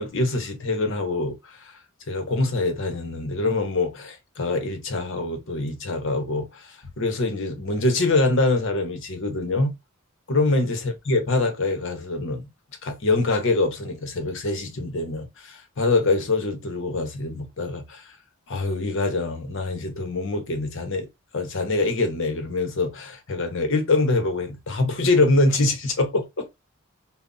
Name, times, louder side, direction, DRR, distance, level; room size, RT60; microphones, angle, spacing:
voice 1, 0.0-1.8 2.1-9.8 10.3-12.5 12.8-18.1 18.5-21.1 21.3-26.5, left 2 dB, 60° left, 0.8 m, -24 dB
2.4 x 2.0 x 3.7 m
head